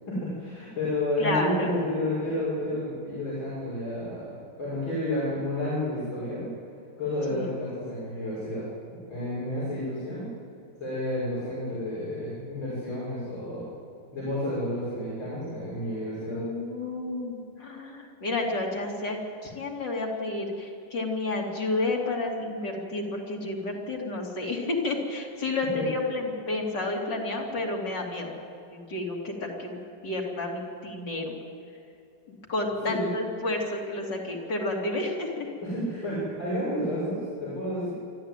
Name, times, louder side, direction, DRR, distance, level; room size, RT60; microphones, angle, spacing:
voice 1, 0.1-6.5 7.0-10.2 10.8-13.7 14.1-16.4 25.7-25.9 32.8-33.1 35.6-37.9, left 1 dB, 85° left, -9 dB, 6.8 m, -31 dB
voice 2, 1.2-1.7 7.3-7.5 16.2-28.3 28.7-31.3 32.3-35.5, left 2 dB, 60° left, -1 dB, 3.6 m, -31 dB
24.5 x 13.5 x 9.1 m, 2.7 s
omnidirectional pair, 2.1 m